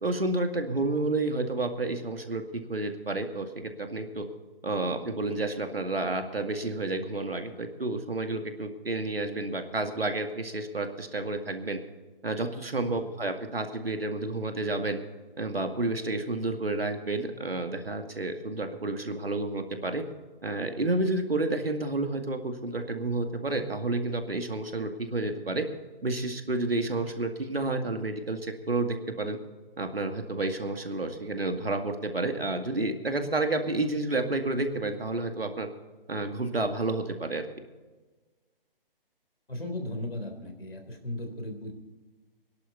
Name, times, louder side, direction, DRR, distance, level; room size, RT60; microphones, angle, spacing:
voice 1, 0.0-4.3 4.6-11.8 12.2-15.0 15.4-20.0 20.4-25.7 26.0-29.4 29.8-35.7 36.1-37.4, right 2 dB, 85° right, 5 dB, 2.2 m, -30 dB
voice 2, 39.5-41.7, left 1 dB, 85° left, 5 dB, 3.7 m, -36 dB
22.0 x 11.5 x 4.1 m, 1.3 s
figure-of-eight pair, 140°, 29 cm